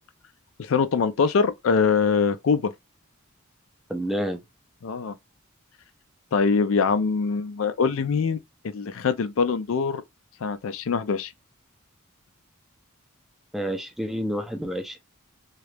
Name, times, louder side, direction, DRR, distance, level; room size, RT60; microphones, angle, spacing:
voice 1, 0.6-2.7 4.8-5.1 6.3-8.4 8.6-10.0 10.4-11.3, left 5 dB, 65° left, 0.4 m, -23 dB
voice 2, 3.9-4.4 13.5-15.0, equal, ahead, 0.4 m, -29 dB
3.0 x 2.3 x 3.2 m
head